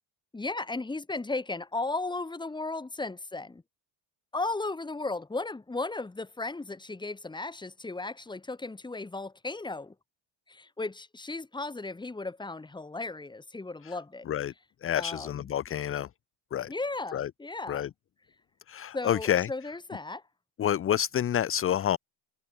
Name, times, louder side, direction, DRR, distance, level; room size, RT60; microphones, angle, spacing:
voice 1, 0.3-3.6 4.3-9.9 10.5-14.3 14.9-15.5 16.7-17.9 18.9-20.2, left 3 dB, 10° left, 2.0 m, -35 dB
voice 2, 14.8-16.1 16.5-16.7 17.1-17.3 17.7-17.9 18.7-19.5 20.6-22.0, left 10 dB, 30° left, 0.7 m, -28 dB
cardioid pair, 155°, 47 cm